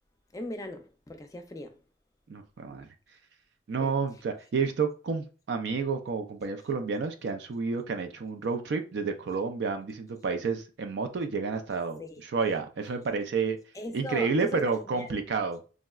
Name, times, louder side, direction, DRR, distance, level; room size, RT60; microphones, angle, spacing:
voice 1, 0.3-1.8 3.8-4.0 12.0-12.2 13.7-15.2, left 2 dB, 20° left, 0.4 m, -39 dB
voice 2, 2.3-2.9 3.7-12.0 12.3-13.6 13.9-15.6, right 5 dB, 70° right, 0.4 m, -30 dB
3.5 x 2.1 x 2.3 m
head